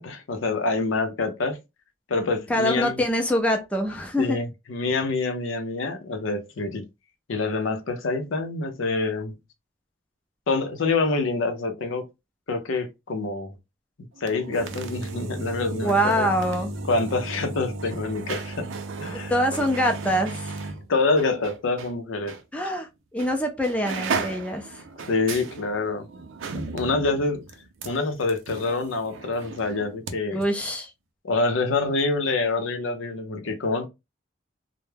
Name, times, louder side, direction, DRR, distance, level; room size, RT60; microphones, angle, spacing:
voice 1, 0.0-1.6 2.1-3.0 4.2-6.8 7.3-9.3 10.5-12.0 12.5-13.5 14.2-16.3 16.9-18.7 19.0-19.3 20.9-22.4 25.1-26.1 26.7-27.4 27.8-30.4 31.2-33.9, left 3 dB, 85° left, 0.5 m, -26 dB
voice 2, 2.5-4.4 15.8-16.8 19.3-20.6 22.5-22.9 23.1-24.8 30.3-30.9, equal, 5° left, 0.4 m, -24 dB
sound 1, 14.2-21.9 22.3-22.4 23.2-23.4 23.6-30.1 30.4-30.5, right 3 dB, 90° right, 0.5 m, -35 dB
2.2 x 2.0 x 3.1 m
head